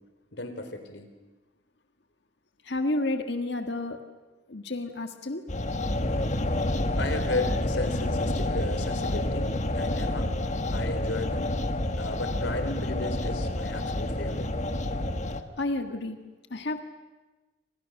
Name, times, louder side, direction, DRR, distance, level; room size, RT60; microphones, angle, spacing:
voice 1, 0.3-1.1 7.0-10.3 10.7-11.6 12.0-14.5, left 2 dB, 85° left, 8 dB, 3.8 m, -34 dB
voice 2, 2.6-4.0 4.5-5.4 15.6-16.2 16.5-16.9, left 2 dB, 65° left, 6 dB, 1.7 m, -30 dB
sound 1, 5.5-15.4, left 1 dB, 40° left, 1.5 m, -29 dB
28.5 x 27.0 x 6.6 m, 1.2 s
head